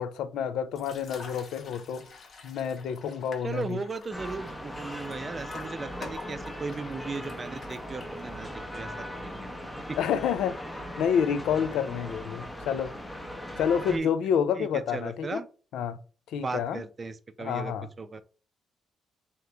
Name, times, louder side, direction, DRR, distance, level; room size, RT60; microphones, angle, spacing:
voice 1, 0.0-2.0 2.4-3.8 10.0-10.6 11.0-12.9 13.6-15.4 15.7-16.0 16.3-16.8 17.4-17.9, left 8 dB, 80° left, 0.4 m, -28 dB
sound 1, 0.7-8.5, left 4 dB, 55° left, 0.8 m, -48 dB
voice 2, 3.4-10.0 13.9-14.1 14.6-15.5 16.3-18.2, right 4 dB, 35° right, 0.4 m, -37 dB
sound 2, 4.1-14.0, equal, 10° left, 0.7 m, -39 dB
3.6 x 2.9 x 3.3 m
cardioid pair, 90°, 0 cm